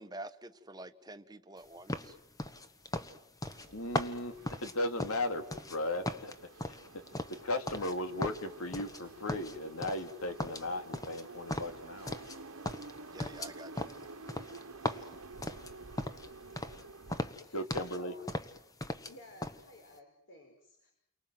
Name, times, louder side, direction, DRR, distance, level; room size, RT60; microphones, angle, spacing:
voice 1, 0.0-2.2 13.1-13.9 14.8-15.1, right 2 dB, 20° right, 1.3 m, -48 dB
sound 1, 1.9-5.8 6.0-7.9 8.2-9.0 9.3-10.1 10.4-12.4 12.6-16.3 16.6-16.8 17.1-18.0 18.3-19.1 19.4-19.6, left 1 dB, 15° left, 1.3 m, -38 dB
sound 2, 3.5-17.3, right 3 dB, 75° right, 1.4 m, -51 dB
voice 2, 3.7-6.3 6.7-7.0 7.3-12.2 17.5-18.1, left 1 dB, 75° left, 2.8 m, -36 dB
voice 3, 17.3-18.3 19.1-20.9, equal, 55° left, 5.0 m, -55 dB
30.0 x 24.0 x 7.8 m
head